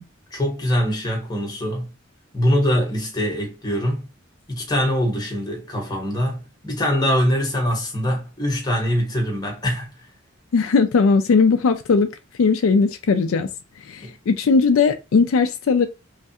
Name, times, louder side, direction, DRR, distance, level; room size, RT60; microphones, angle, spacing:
voice 1, 0.3-1.9 2.3-4.1 4.5-9.9 14.0-14.1, equal, 20° left, 1.1 m, -23 dB
voice 2, 10.5-12.1 12.4-13.5 13.9-15.9, left 4 dB, 75° left, 0.4 m, -18 dB
3.2 x 2.3 x 2.7 m
head